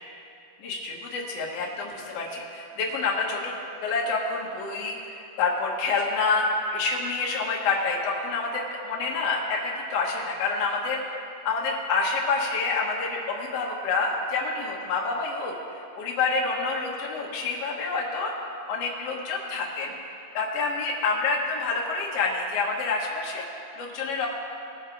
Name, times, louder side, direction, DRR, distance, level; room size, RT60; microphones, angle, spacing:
voice 1, 0.6-11.0 11.4-15.5 16.0-18.3 18.7-19.9 20.3-23.5 23.8-24.3, left 4 dB, 70° left, -2 dB, 1.5 m, -28 dB
20.0 x 7.3 x 4.5 m, 2.6 s
omnidirectional pair, 4.6 m